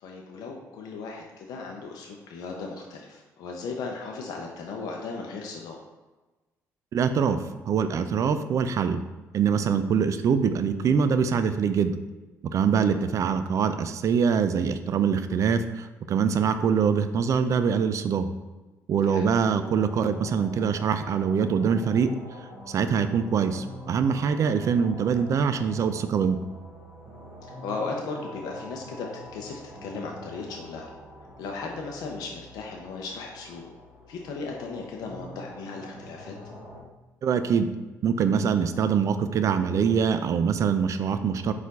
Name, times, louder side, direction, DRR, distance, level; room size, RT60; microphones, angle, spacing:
voice 1, 0.0-5.8 12.8-13.0 19.1-19.3 27.4-30.9 31.4-33.7 34.1-36.3, left 4 dB, 75° left, 1 dB, 0.5 m, -36 dB
voice 2, 6.9-9.0 9.3-12.0 12.5-18.3 18.9-22.1 22.7-26.4 37.2-37.7 38.0-41.5, right 6 dB, 55° right, 10 dB, 0.3 m, -24 dB
sound 1, 19.3-36.8, equal, 30° right, 1.3 m, -44 dB
4.4 x 2.4 x 3.9 m, 1.2 s
supercardioid pair, 75°, 7 cm